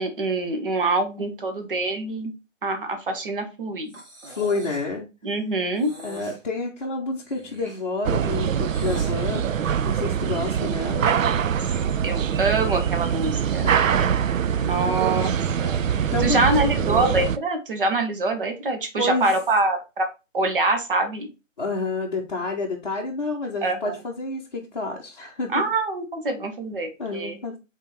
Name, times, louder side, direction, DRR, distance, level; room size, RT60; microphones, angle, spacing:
voice 1, 0.0-2.3 2.6-3.9 5.2-5.9 11.2-11.4 12.0-13.7 14.6-15.3 15.6-20.1 20.3-21.3 23.6-24.0 25.5-27.4, right 2 dB, 45° right, 7 dB, 1.1 m, -25 dB
Breathing, 3.9-4.9 5.7-6.4 7.2-9.1, right 1 dB, 60° right, 2.2 m, -43 dB
voice 2, 4.3-5.1 6.0-9.5 9.8-11.1 13.6-14.2 16.1-17.0 19.0-19.3 21.6-25.6 27.0-27.5, left 3 dB, 35° left, -2 dB, 0.7 m, -29 dB
sound 1, 8.0-17.4, right 8 dB, 80° right, 0.5 m, -23 dB
3.6 x 3.4 x 4.1 m, 0.28 s
figure-of-eight pair, 160°, 39 cm